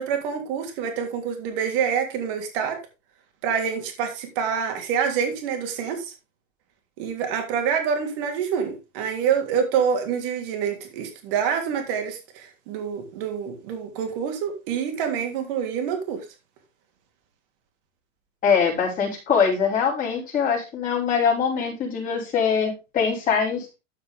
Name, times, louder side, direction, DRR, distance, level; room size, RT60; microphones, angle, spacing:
voice 1, 0.0-2.8 3.4-6.1 7.0-16.2, right 7 dB, 45° right, 4 dB, 3.2 m, -26 dB
voice 2, 18.4-23.7, left 6 dB, 20° left, -5 dB, 5.5 m, -23 dB
13.5 x 5.8 x 3.6 m, 0.27 s
supercardioid pair, 155°, 39 cm